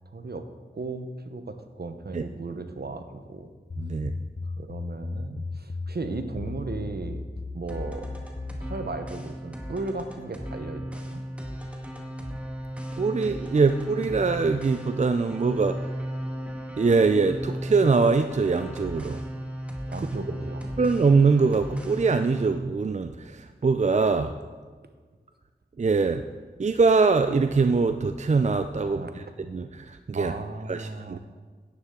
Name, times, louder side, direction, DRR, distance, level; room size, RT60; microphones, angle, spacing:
voice 1, 0.1-0.4 0.7-3.5 4.4-7.2 7.5-8.1 8.6-11.2 19.9-20.8 28.9-29.2 30.1-31.2, right 3 dB, 65° right, 8 dB, 0.9 m, -36 dB
sound 1, 3.7-9.0, left 3 dB, 35° left, 0.5 m, -36 dB
voice 2, 3.8-4.1 12.9-15.9 16.8-19.2 20.8-24.3 25.8-26.2 26.6-30.3 30.7-31.2, right 4 dB, 40° right, 9 dB, 0.4 m, -23 dB
sound 2, 7.7-22.5, equal, 5° right, 1.4 m, -36 dB
9.8 x 9.3 x 3.7 m, 1.5 s
wide cardioid pair, 45°, 18 cm